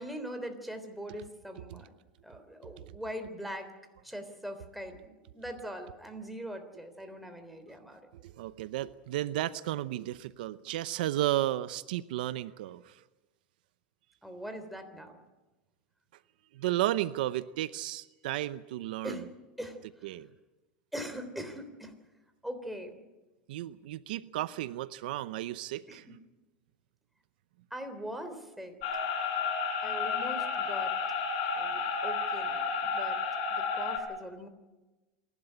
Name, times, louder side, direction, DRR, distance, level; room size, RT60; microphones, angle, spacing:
voice 1, 0.0-1.9 2.2-3.7 4.0-8.0 14.2-15.2 19.0-19.3 19.6-20.1 20.9-21.9 22.4-23.0 25.9-26.0 27.7-28.8 29.8-30.9 31.5-33.2 33.5-34.5, equal, ahead, 6 dB, 3.4 m, -41 dB
voice 2, 8.2-12.9 16.5-19.2 20.0-20.3 23.5-26.1, right 14 dB, 80° right, 15 dB, 0.7 m, -33 dB
sound 1, 28.8-34.0, left 5 dB, 70° left, 7.3 m, -31 dB
27.5 x 12.0 x 10.0 m, 1.1 s
supercardioid pair, 125°, 5 cm